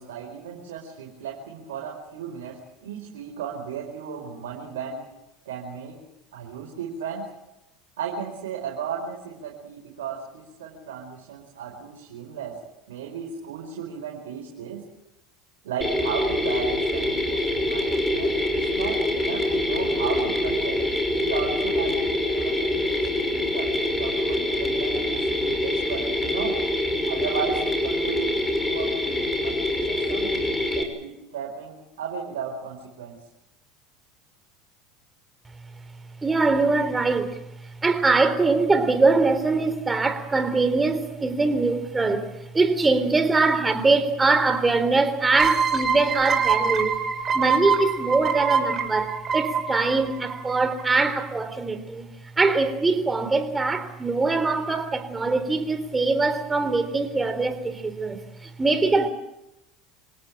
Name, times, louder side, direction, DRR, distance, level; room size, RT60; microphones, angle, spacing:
voice 1, 0.0-5.1 5.4-6.1 6.3-7.3 8.0-12.6 12.9-14.8 15.6-20.8 21.2-25.1 25.4-26.6 27.0-33.2, right 7 dB, 85° right, 5.0 m, -35 dB
Mechanisms, 15.8-30.8, left 1 dB, 10° left, 6.0 m, -25 dB
voice 2, 36.2-37.4 37.8-47.0 47.3-52.1 52.4-59.1, right 3 dB, 15° right, 4.0 m, -22 dB
sound 1, 45.3-50.8, right 6 dB, 35° right, 5.6 m, -25 dB
27.5 x 17.5 x 9.0 m
hypercardioid pair, 95°, 0 cm